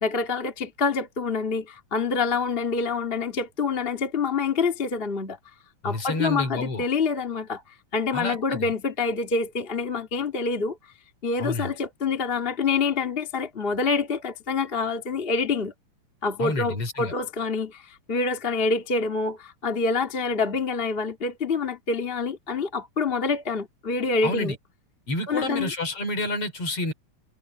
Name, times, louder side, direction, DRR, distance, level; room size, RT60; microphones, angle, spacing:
voice 1, 0.0-5.4 5.8-7.6 7.9-10.8 11.2-15.7 16.2-24.6 25.3-25.7, left 4 dB, 20° left, 1.9 m, -26 dB
voice 2, 5.8-6.8 8.1-8.7 11.4-11.7 16.4-17.1 24.2-24.6 25.1-26.9, left 2 dB, 45° left, 4.5 m, -29 dB
omnidirectional pair, 3.7 m